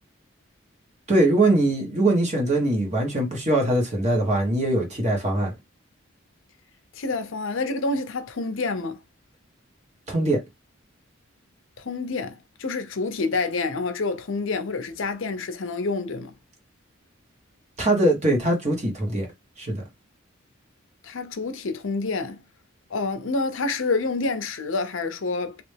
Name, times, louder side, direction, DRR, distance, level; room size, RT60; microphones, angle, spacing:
voice 1, 1.1-5.5 10.1-10.4 17.8-19.3 19.6-19.8, right 1 dB, 35° right, 1.4 m, -22 dB
voice 2, 6.9-9.0 11.8-16.3 21.0-22.4 22.9-25.6, left 3 dB, 65° left, 0.6 m, -28 dB
3.3 x 3.0 x 3.3 m
head